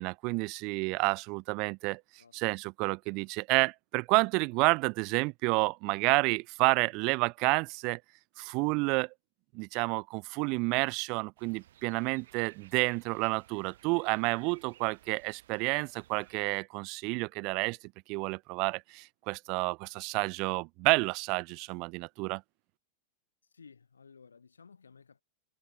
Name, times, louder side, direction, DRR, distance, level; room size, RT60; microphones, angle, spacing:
voice 1, 0.0-2.0 2.3-8.0 8.4-9.1 9.5-17.8 18.1-22.4, right 28 dB, 45° right, 1.0 m, -30 dB
sound 1, 11.4-16.6, right 13 dB, 60° right, 3.8 m, -60 dB
voice 2, 23.4-25.2, left 5 dB, 75° left, 5.4 m, -56 dB
figure-of-eight pair, 90°, 0 cm